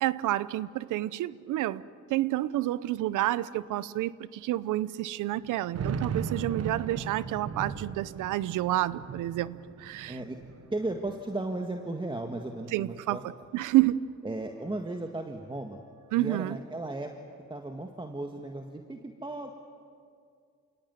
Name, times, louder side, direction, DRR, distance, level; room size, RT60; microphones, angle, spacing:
voice 1, 0.0-1.8 2.1-10.2 12.7-13.2 13.5-14.1 16.1-16.6, right 15 dB, 85° right, 18 dB, 0.8 m, -29 dB
sound 1, 1.8-1.9 2.1-2.2 3.1-3.2 3.6-3.7 5.4-11.8 12.2-13.2, right 6 dB, 55° right, 1.3 m, -38 dB
voice 2, 10.1-10.4 10.7-13.2 14.2-15.8 16.2-17.1 17.5-19.5, right 2 dB, 15° right, 4 dB, 1.7 m, -35 dB
28.0 x 17.5 x 9.5 m, 2.3 s
cardioid pair, 90°, 30 cm